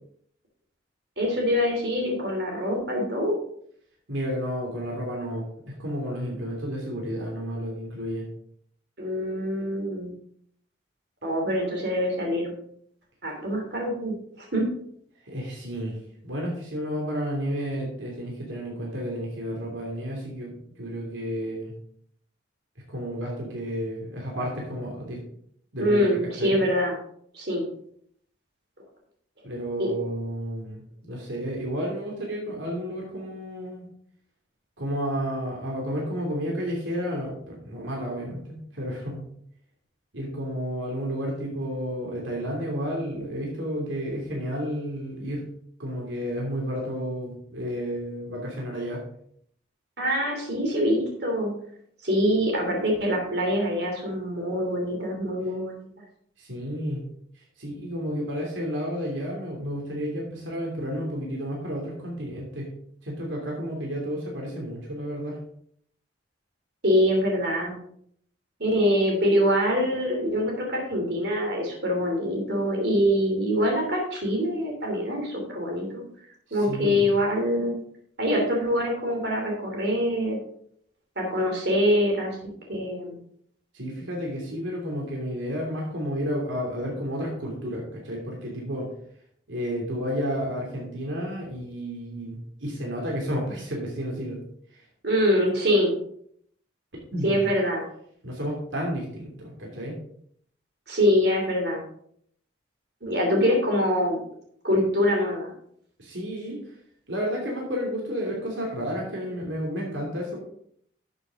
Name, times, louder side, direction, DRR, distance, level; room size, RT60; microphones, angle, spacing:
voice 1, 1.2-3.3 9.0-10.1 11.2-12.5 13.2-14.7 25.8-27.0 27.3-27.7 29.8-29.9 50.0-51.5 52.0-55.9 66.8-67.8 68.6-76.0 76.5-77.7 78.2-80.4 81.2-82.4 82.7-83.2 95.0-95.9 97.2-97.8 100.9-101.8 103.0-104.2 104.6-105.5, equal, 60° right, 0 dB, 3.0 m, -24 dB
voice 2, 4.1-8.2 15.2-16.0 16.2-21.7 22.9-25.2 25.7-26.6 29.4-33.8 34.8-39.3 40.1-45.5 45.8-49.0 56.4-57.0 57.6-62.7 63.0-65.3 76.5-77.1 83.7-88.9 89.5-94.4 94.7-94.8 97.1-97.4 98.2-100.0 106.0-106.6 107.1-110.4, equal, 85° right, -2 dB, 2.9 m, -31 dB
12.0 x 7.0 x 3.7 m, 0.66 s
head